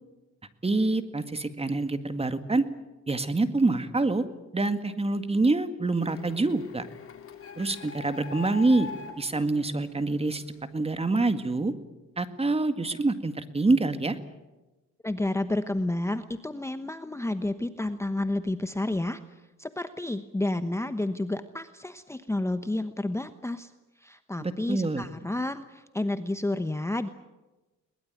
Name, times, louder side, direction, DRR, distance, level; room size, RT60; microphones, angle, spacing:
voice 1, 0.6-2.7 3.1-4.2 4.5-6.9 7.6-8.9 9.2-10.4 10.7-11.7 12.2-14.2 24.4-25.0, right 2 dB, 20° right, 10 dB, 1.9 m, -26 dB
Printer, 6.0-10.6, left 5 dB, 45° left, 3.2 m, -42 dB
voice 2, 15.0-23.7 24.0-27.1, left 2 dB, 10° left, 10 dB, 1.0 m, -30 dB
22.0 x 20.0 x 9.1 m, 1.1 s
cardioid pair, 90°, 30 cm